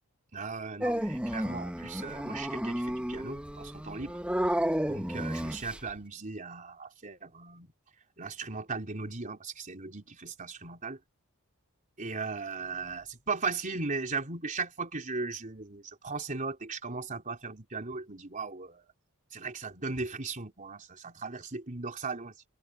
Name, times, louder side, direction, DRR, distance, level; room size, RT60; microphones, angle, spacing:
voice 1, 0.3-4.2 4.9-7.7 8.2-11.0 12.0-18.8 19.3-22.3, right 4 dB, 35° right, 4.1 m, -37 dB
Dog, 0.8-5.9, equal, 5° right, 1.3 m, -32 dB
head